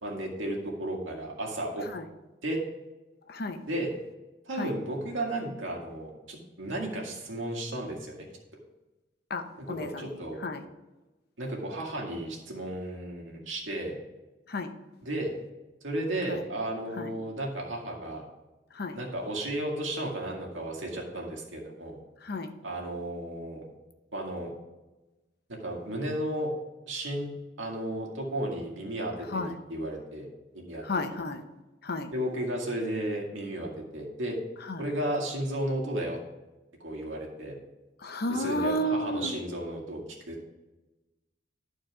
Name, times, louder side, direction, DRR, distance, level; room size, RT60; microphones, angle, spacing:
voice 1, 0.0-1.8 2.4-2.6 3.7-3.9 4.4-8.3 9.6-10.4 11.4-14.0 15.0-15.3 15.8-18.2 18.9-22.0 22.6-23.6 24.1-24.5 25.6-26.5 26.9-27.3 27.6-30.3 30.5-30.8 32.1-34.4 34.8-36.2 36.8-37.5 38.3-40.5, right 1 dB, 90° right, -1 dB, 2.0 m, -34 dB
voice 2, 3.3-3.6 4.6-4.7 9.3-10.1 10.4-10.6 14.5-14.7 16.3-16.4 17.0-17.1 18.8-19.0 22.2-22.5 29.3-29.5 30.9-31.4 31.8-32.1 34.7-34.8 38.0-39.4, left 1 dB, 55° left, 7 dB, 0.8 m, -32 dB
11.5 x 4.6 x 4.8 m, 1.1 s
head